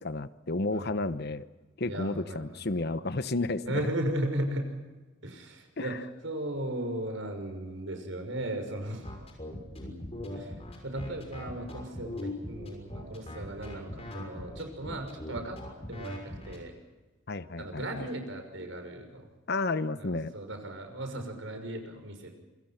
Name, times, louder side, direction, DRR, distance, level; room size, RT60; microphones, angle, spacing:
voice 1, 0.0-1.5 1.8-3.8 5.8-5.9 9.8-10.3 17.3-18.1 19.5-20.3, left 2 dB, 55° left, 13 dB, 1.0 m, -32 dB
voice 2, 0.7-1.1 1.8-2.6 3.6-4.8 5.2-5.9 6.2-9.2 10.3-10.6 10.8-15.6 15.9-16.7 17.6-19.3 19.9-22.3, right 1 dB, 75° right, 5 dB, 6.0 m, -36 dB
sound 1, 9.0-16.6, left 1 dB, 30° left, 6.2 m, -40 dB
27.5 x 24.5 x 5.9 m, 1.2 s
head